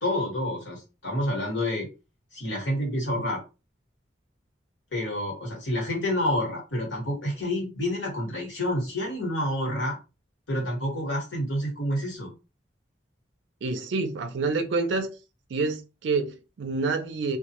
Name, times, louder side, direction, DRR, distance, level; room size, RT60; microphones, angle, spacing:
voice 1, 0.0-1.9 2.3-3.4 4.9-10.0 10.5-12.3, left 1 dB, 80° left, 1.2 m, -28 dB
voice 2, 13.6-15.1 15.5-17.4, right 4 dB, 75° right, 0.4 m, -28 dB
2.2 x 2.1 x 2.8 m
head